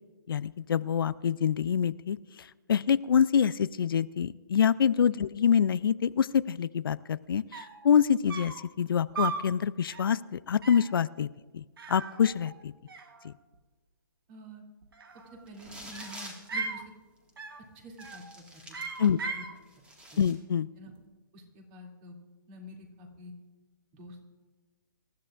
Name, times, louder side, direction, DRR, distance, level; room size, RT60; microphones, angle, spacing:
voice 1, 0.3-11.3 11.5-12.7 13.2-13.3 19.0-19.2 20.2-20.7, left 8 dB, 75° left, 16 dB, 0.5 m, -26 dB
sound 1, 7.2-7.3 7.5-7.9 8.3-8.7 9.1-9.5 9.9-10.2 10.6-11.0 11.8-12.6 12.9-13.6 14.8-15.4 15.9-16.8 17.4-17.7 18.0-18.3 18.7-19.5, right 5 dB, 80° right, 1.6 m, -38 dB
voice 2, 14.3-14.6 15.3-16.8 17.7-18.8 19.0-19.5 20.1-20.2 20.8-20.9 21.3-22.2 22.5-23.3 23.9-24.3, equal, 30° right, 1 dB, 2.7 m, -48 dB
sound 2, 15.5-16.5 17.3-17.4 17.9-19.2 19.6-20.3, right 1 dB, 10° right, 1.9 m, -47 dB
26.0 x 13.5 x 2.5 m, 1.3 s
hypercardioid pair, 155°, 12 cm